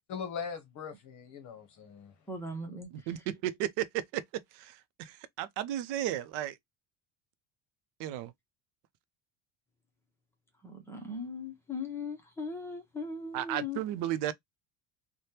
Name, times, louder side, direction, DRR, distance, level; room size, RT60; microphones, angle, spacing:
voice 1, 0.1-2.1, left 6 dB, 45° left, 0.7 m, -40 dB
voice 2, 2.3-2.9 10.6-13.8, left 3 dB, 5° left, 0.6 m, -38 dB
voice 3, 2.9-4.2 4.5-6.6 8.0-8.3 13.3-14.3, right 12 dB, 80° right, 0.6 m, -34 dB
3.3 x 2.1 x 2.7 m
cardioid pair, 175°, 41 cm